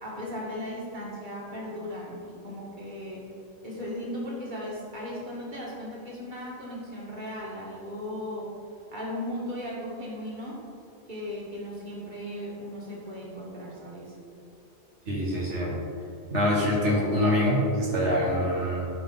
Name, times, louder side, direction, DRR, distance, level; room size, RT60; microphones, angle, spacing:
voice 1, 0.0-3.3 3.6-8.5 8.9-10.6 11.1-14.1, left 1 dB, 45° right, -5 dB, 2.3 m, -37 dB
voice 2, 15.1-15.7 16.3-18.9, left 1 dB, 85° right, -4 dB, 2.0 m, -25 dB
15.5 x 5.8 x 4.0 m, 2.6 s
omnidirectional pair, 1.2 m